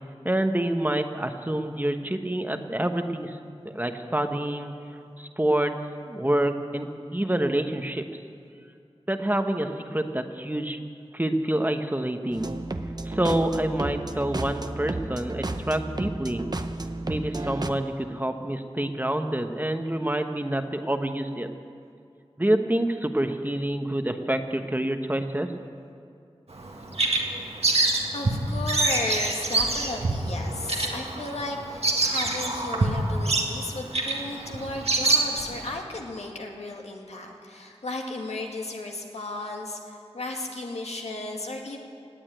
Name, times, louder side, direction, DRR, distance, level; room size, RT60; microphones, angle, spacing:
voice 1, 0.2-3.4 3.6-4.7 5.2-5.7 6.1-8.2 9.1-10.8 11.1-12.5 13.0-16.4 17.1-21.5 22.4-25.5, right 1 dB, 15° right, 6 dB, 1.0 m, -27 dB
sound 1, 12.3-17.7, right 2 dB, 40° right, 0.8 m, -32 dB
Bird vocalization bird call bird song, 26.5-35.7, right 2 dB, 75° right, 1.8 m, -26 dB
voice 2, 27.7-41.8, left 2 dB, 85° left, 1 dB, 1.9 m, -34 dB
18.0 x 8.9 x 9.0 m, 2.4 s
wide cardioid pair, 55°, 11 cm